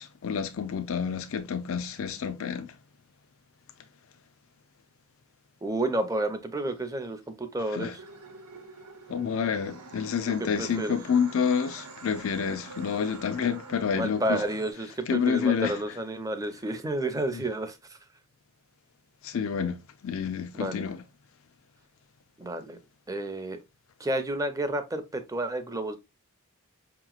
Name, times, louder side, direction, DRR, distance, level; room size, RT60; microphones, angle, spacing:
voice 1, 0.0-2.7 7.7-7.9 9.1-14.4 15.1-15.8 19.2-19.8 20.0-21.0, left 6 dB, 60° left, 0.4 m, -28 dB
voice 2, 5.6-8.0 10.4-11.0 13.9-18.0 20.5-20.8 22.4-22.8 23.1-23.6 24.0-26.0, right 1 dB, 15° right, 0.5 m, -31 dB
sound 1, 8.0-14.7, right 3 dB, 90° right, 0.9 m, -46 dB
5.4 x 2.9 x 2.3 m
head